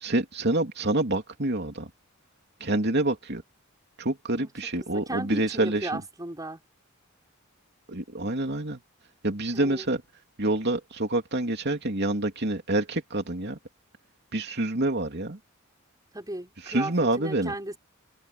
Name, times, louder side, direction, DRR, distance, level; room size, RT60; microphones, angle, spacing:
voice 1, 0.0-1.9 2.6-3.4 4.0-6.0 7.9-8.8 9.2-10.0 10.4-13.6 14.3-15.4 16.7-17.5, right 2 dB, 50° right, 3.1 m, -27 dB
voice 2, 4.9-6.6 9.5-9.9 16.1-17.8, right 2 dB, 20° right, 5.7 m, -35 dB
open air
head